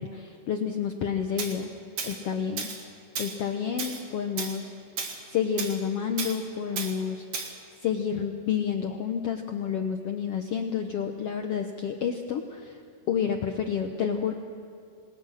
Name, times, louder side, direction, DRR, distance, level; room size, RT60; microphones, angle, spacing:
voice 1, 0.0-1.7 2.0-2.7 3.2-4.7 5.3-7.5 7.8-12.8 13.1-14.3, left 7 dB, 75° left, 5 dB, 1.3 m, -29 dB
Tools, 1.4-1.5 2.0-2.2 2.6-2.8 3.1-3.4 3.8-4.0 4.4-4.6 5.0-5.2 5.6-5.8 6.2-6.4 6.8-6.9 7.3-7.5, right 5 dB, 55° right, 3.1 m, -33 dB
27.5 x 20.0 x 6.5 m, 2.5 s
omnidirectional pair, 4.0 m